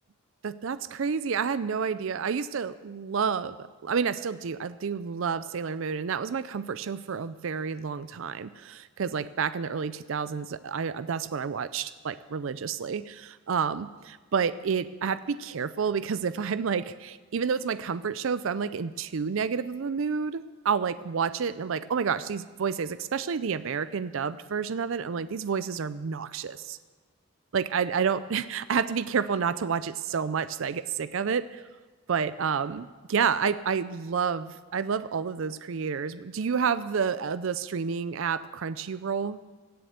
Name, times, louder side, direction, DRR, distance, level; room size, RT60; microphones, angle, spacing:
voice 1, 0.4-3.6 3.8-26.8 27.5-31.6 32.1-39.4, right 6 dB, 65° right, 14 dB, 0.4 m, -29 dB
16.5 x 7.7 x 8.0 m, 1.3 s
head